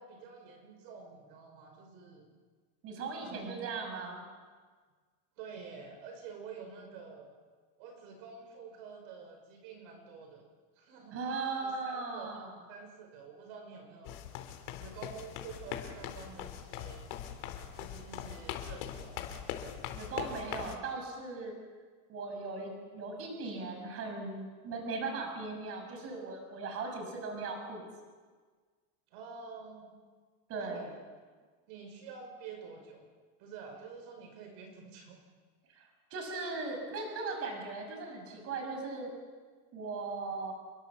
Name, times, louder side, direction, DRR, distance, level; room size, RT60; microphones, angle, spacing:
voice 1, 0.0-2.3 3.2-3.7 5.4-7.3 7.8-10.5 10.8-11.2 11.6-14.2 14.8-17.1 17.7-19.2 29.1-29.9 30.6-30.9 31.7-33.1 33.4-35.2, right 5 dB, 50° right, 3 dB, 5.4 m, -48 dB
voice 2, 2.8-4.3 11.1-12.5 19.9-21.5 22.1-27.8 30.5-30.9 35.7-39.1 39.7-40.5, right 3 dB, 30° right, 3 dB, 6.3 m, -38 dB
sound 1, 14.0-20.8, left 10 dB, 50° left, 4.0 m, -41 dB
29.5 x 22.5 x 7.4 m, 1.5 s
supercardioid pair, 175°, 46 cm